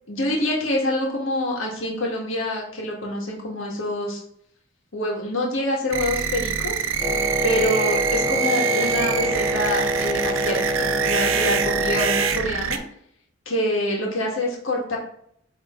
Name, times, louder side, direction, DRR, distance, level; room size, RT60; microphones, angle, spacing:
voice 1, 0.1-4.2 4.9-6.8 7.4-12.8 13.5-15.0, left 1 dB, 75° left, -1 dB, 1.8 m, -26 dB
sound 1, 5.9-12.8, right 7 dB, 80° right, 0.6 m, -25 dB
Wind instrument woodwind instrument, 7.0-12.4, equal, 5° left, 1.0 m, -26 dB
8.3 x 3.5 x 3.8 m, 0.66 s
head